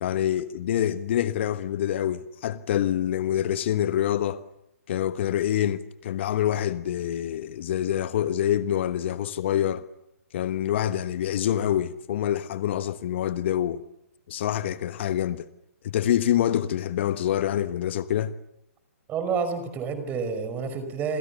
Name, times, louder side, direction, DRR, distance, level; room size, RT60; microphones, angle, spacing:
voice 1, 0.0-4.4 4.9-9.8 10.3-13.8 14.3-15.4 15.8-18.3, left 11 dB, 50° left, 1.2 m, -26 dB
voice 2, 19.1-21.2, right 5 dB, 20° right, 5.3 m, -29 dB
28.0 x 26.5 x 7.0 m
figure-of-eight pair, 130°, 8 cm